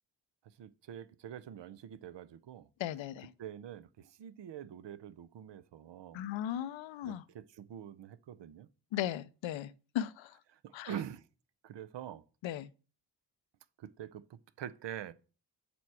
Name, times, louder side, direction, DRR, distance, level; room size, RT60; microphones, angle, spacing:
voice 1, 0.6-2.7 3.4-6.2 7.0-8.7 10.6-11.2 11.6-12.2 13.8-15.1, right 9 dB, 70° right, 0.8 m, -45 dB
voice 2, 2.8-3.3 6.1-7.2 8.9-10.4 10.7-10.9 12.4-12.7, left 11 dB, 80° left, 0.7 m, -37 dB
7.1 x 4.5 x 4.8 m
supercardioid pair, 55°, 45 cm